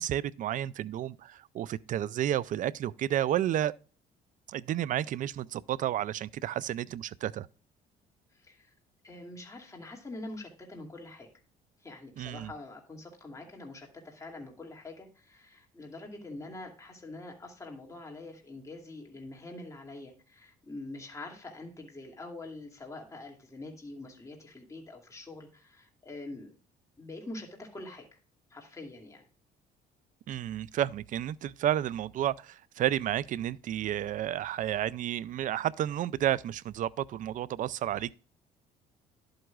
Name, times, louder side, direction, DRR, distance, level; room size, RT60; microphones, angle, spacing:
voice 1, 0.0-3.7 4.5-7.5 12.2-12.5 30.3-38.1, right 11 dB, 50° right, 0.4 m, -31 dB
voice 2, 8.3-8.7 9.0-11.3 11.8-26.5 27.0-28.1 28.5-29.3, left 2 dB, 20° left, 2.4 m, -45 dB
11.0 x 7.8 x 2.3 m
cardioid pair, 110°, 17 cm